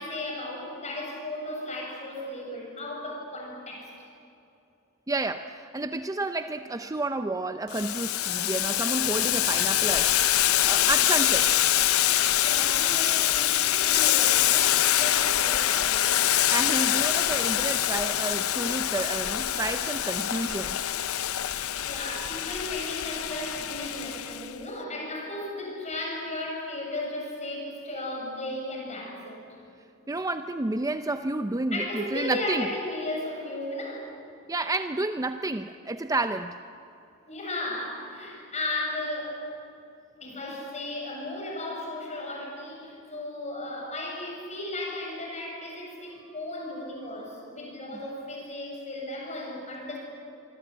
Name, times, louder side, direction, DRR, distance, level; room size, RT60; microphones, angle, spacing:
voice 1, 0.0-3.9 12.2-16.2 21.4-29.5 31.7-34.1 37.2-39.4 40.2-50.0, left 1 dB, 35° left, 0 dB, 7.5 m, -35 dB
voice 2, 5.1-10.2 10.6-11.6 16.5-20.8 30.1-32.7 34.5-36.6, right 2 dB, 15° right, 9 dB, 0.6 m, -30 dB
Boiling, 7.7-24.5, left 12 dB, 75° left, 0.7 m, -25 dB
25.5 x 24.5 x 8.8 m, 2.7 s
head